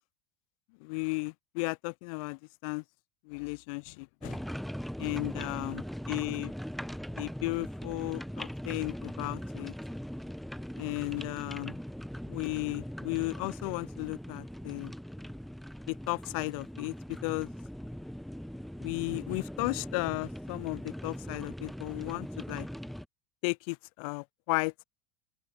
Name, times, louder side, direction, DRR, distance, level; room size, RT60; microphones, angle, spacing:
voice 1, 0.8-2.8 3.2-4.4 5.0-6.5 7.2-9.7 10.8-11.8 12.3-14.9 15.9-17.5 18.8-22.7 23.4-24.8, left 29 dB, 70° left, 0.6 m, -35 dB
sound 1, 4.2-23.0, equal, ahead, 1.2 m, -40 dB
open air
supercardioid pair, 135°, 18 cm